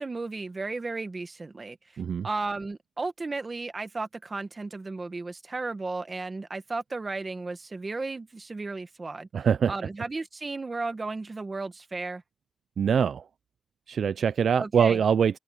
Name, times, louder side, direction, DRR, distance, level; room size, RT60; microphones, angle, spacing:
voice 1, 0.0-1.8 2.2-9.3 9.7-12.2 14.6-15.0, right 3 dB, 30° right, 1.3 m, -34 dB
voice 2, 2.0-2.3 9.3-9.7 12.8-13.3 13.9-15.4, right 7 dB, 75° right, 0.4 m, -23 dB
open air
wide cardioid pair, 165°, 0 cm